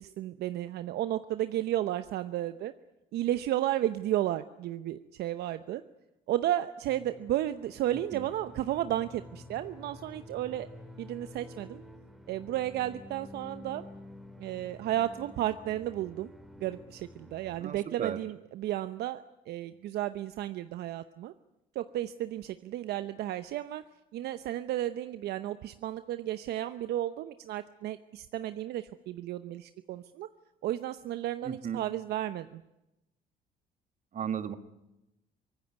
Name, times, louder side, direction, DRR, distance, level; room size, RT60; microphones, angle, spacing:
voice 1, 0.0-2.7 3.1-5.8 6.3-10.7 11.0-11.8 12.3-13.8 14.4-16.3 16.6-21.3 21.7-23.8 24.1-30.3 30.6-32.6, right 13 dB, 75° right, 11 dB, 0.8 m, -33 dB
sound 1, 6.8-17.6, left 1 dB, ahead, 2.4 m, -50 dB
voice 2, 17.6-18.2 31.4-31.8 34.1-34.6, right 8 dB, 45° right, 10 dB, 1.9 m, -35 dB
24.0 x 19.0 x 9.4 m, 0.93 s
cardioid pair, 110°, 17 cm